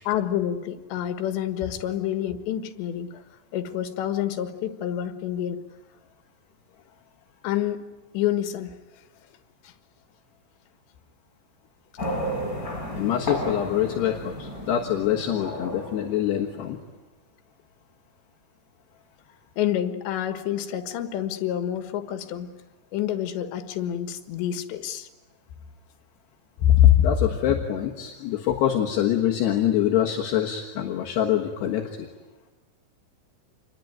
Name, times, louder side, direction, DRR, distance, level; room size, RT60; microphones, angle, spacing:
voice 1, 0.1-3.1 3.5-5.6 7.4-7.8 8.1-8.8 9.6-9.7 19.6-22.5 22.9-25.1, left 11 dB, 90° left, 9 dB, 3.6 m, -28 dB
sound 1, 12.0-16.8, equal, 20° left, 5.7 m, -33 dB
voice 2, 12.9-16.8 26.6-32.1, left 11 dB, 75° left, 0 dB, 3.5 m, -23 dB
27.5 x 22.0 x 9.3 m, 1.2 s
omnidirectional pair, 5.0 m